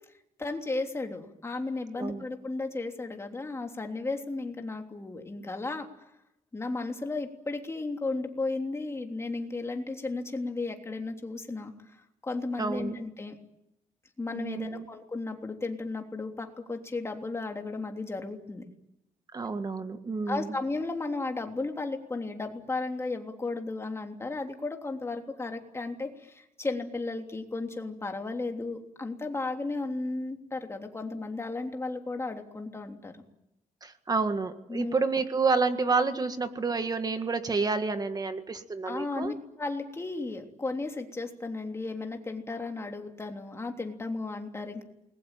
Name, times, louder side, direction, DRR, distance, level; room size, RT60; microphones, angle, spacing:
voice 1, 0.4-5.9 6.5-12.0 12.2-13.4 14.2-18.6 20.3-33.2 34.7-34.9 38.8-44.8, left 3 dB, 20° left, 4 dB, 3.3 m, -34 dB
voice 2, 12.6-13.0 14.3-14.9 19.3-20.5 33.8-39.4, right 4 dB, 30° right, 9 dB, 1.7 m, -29 dB
28.5 x 21.0 x 9.2 m, 0.88 s
cardioid pair, 115°, 13 cm